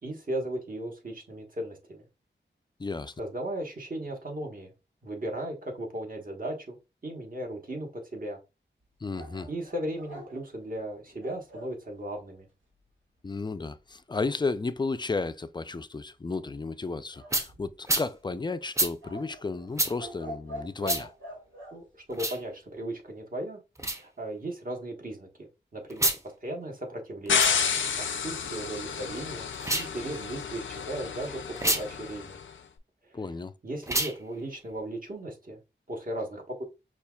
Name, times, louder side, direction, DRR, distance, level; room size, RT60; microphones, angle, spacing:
voice 1, 0.0-2.0 3.2-4.7 5.0-6.8 7.0-8.4 9.5-12.5 21.7-23.6 23.9-27.5 28.0-32.4 33.1-33.2 33.6-35.6 35.9-36.6, right 1 dB, 45° right, 1.2 m, -36 dB
voice 2, 2.8-3.1 9.0-9.5 13.2-21.1 33.1-33.5, left 3 dB, 25° left, 0.3 m, -33 dB
sound 1, 9.1-11.8 17.1-18.0 19.0-21.8, equal, 80° right, 1.6 m, -43 dB
sound 2, 17.3-17.5 17.9-18.1 18.7-18.9 19.8-19.9 20.8-21.0 22.1-22.4 23.8-24.0 25.9-26.2 27.3-27.6 29.5-29.9 31.6-31.8 33.8-34.2, right 1 dB, 15° right, 0.6 m, -27 dB
sound 3, 27.3-32.4, left 6 dB, 80° left, 0.5 m, -30 dB
5.6 x 2.4 x 2.3 m
wide cardioid pair, 50°, 20 cm